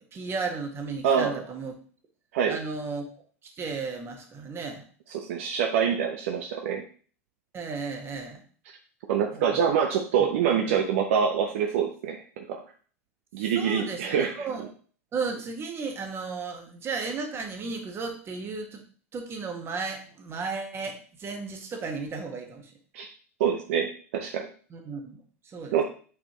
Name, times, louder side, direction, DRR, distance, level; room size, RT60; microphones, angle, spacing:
voice 1, 0.1-1.7 2.5-3.1 3.4-4.8 7.5-8.4 9.3-9.7 10.6-10.8 13.5-14.7 15.1-18.8 19.1-22.7 24.7-25.2 25.5-25.8, right 4 dB, 30° right, 4 dB, 1.7 m, -34 dB
voice 2, 1.0-1.4 2.3-2.6 5.1-6.8 9.1-12.6 13.3-14.5 22.9-23.1 23.4-24.5 25.7-25.8, right 7 dB, 65° right, 5 dB, 0.7 m, -25 dB
8.5 x 4.4 x 3.1 m, 0.42 s
hypercardioid pair, 85°, 8 cm